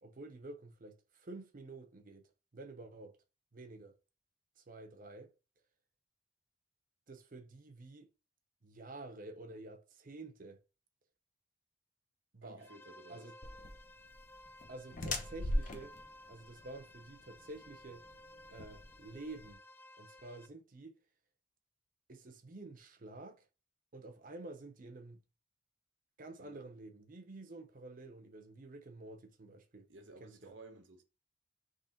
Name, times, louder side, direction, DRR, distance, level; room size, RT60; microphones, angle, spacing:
voice 1, 0.0-3.2 3.5-3.9 4.6-5.3 7.1-8.1 8.6-10.6 12.3-12.7 13.1-13.4 14.7-15.9 16.3-18.0 18.5-19.6 20.0-21.0 22.1-23.5 23.9-25.2 26.2-29.9 30.2-30.6, right 2 dB, 45° right, 0.7 m, -50 dB
voice 2, 12.4-13.3 26.4-26.6 29.9-31.0, right 2 dB, 85° right, 1.0 m, -55 dB
sound 1, 12.6-20.5, left 1 dB, 10° left, 0.3 m, -57 dB
sound 2, 13.4-19.5, left 1 dB, 45° left, 0.8 m, -40 dB
3.7 x 3.2 x 4.3 m
head